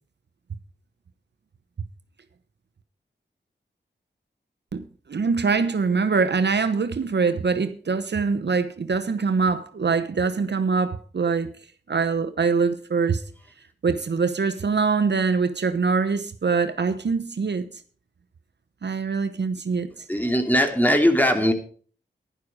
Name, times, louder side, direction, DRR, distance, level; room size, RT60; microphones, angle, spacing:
voice 1, 4.7-11.5 11.9-13.2 13.8-17.7 18.8-19.9, right 5 dB, 65° right, 1.0 m, -23 dB
voice 2, 20.1-21.5, equal, 10° left, 2.8 m, -20 dB
11.5 x 11.0 x 5.0 m
cardioid pair, 50°, 20 cm